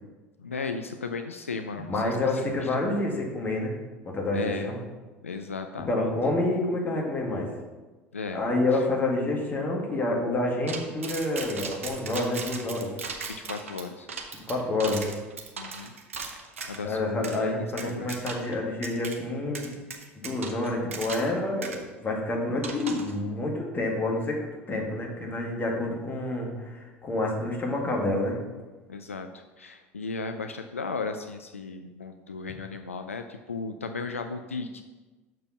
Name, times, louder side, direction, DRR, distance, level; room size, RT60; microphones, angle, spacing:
voice 1, 0.4-3.1 4.3-4.7 5.2-6.1 8.1-8.4 13.3-14.1 15.6-15.9 16.3-16.4 16.7-17.5 17.8-18.2 28.9-34.8, left 4 dB, 85° left, 7 dB, 0.4 m, -35 dB
voice 2, 1.9-3.8 4.0-4.8 5.9-7.5 8.3-12.9 14.5-15.1 16.8-19.7 20.2-28.4, left 2 dB, 25° left, 0 dB, 1.9 m, -28 dB
sound 1, 10.7-16.8 17.2-17.4 17.8-18.6 18.8-19.2 19.6-21.4 21.6-21.8 22.6-23.1, right 5 dB, 80° right, 0.8 m, -37 dB
6.7 x 4.6 x 5.8 m, 1.2 s
figure-of-eight pair, 70°, 7 cm